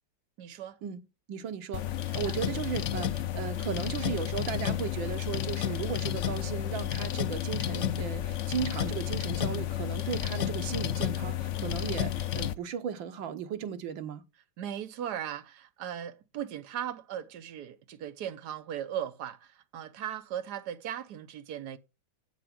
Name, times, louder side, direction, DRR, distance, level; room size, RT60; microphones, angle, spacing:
voice 1, 0.4-0.8 2.1-2.3 14.6-21.8, right 10 dB, 60° right, 1.5 m, -38 dB
voice 2, 1.3-14.2, right 8 dB, 80° right, 1.9 m, -36 dB
sound 1, 1.7-12.5, left 11 dB, 85° left, 0.6 m, -31 dB
8.2 x 7.5 x 5.9 m
omnidirectional pair, 2.1 m